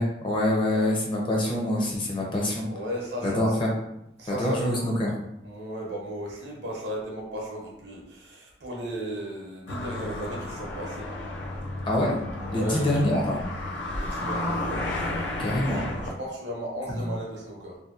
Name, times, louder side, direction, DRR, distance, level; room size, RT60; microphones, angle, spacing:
voice 1, 0.0-2.7 3.2-3.7 4.3-5.1 11.8-12.1 12.5-13.4 15.4-15.8 17.0-17.1, left 1 dB, 25° left, -3 dB, 0.5 m, -25 dB
voice 2, 2.6-3.6 4.2-4.9 5.4-11.1 12.4-13.0 14.0-14.8 15.1-15.3 15.7-15.8 16.2-17.8, right 1 dB, 70° right, -2 dB, 0.7 m, -35 dB
sound 1, 9.7-16.1, left 1 dB, 85° left, 0.4 m, -32 dB
2.7 x 2.1 x 2.3 m, 0.81 s
head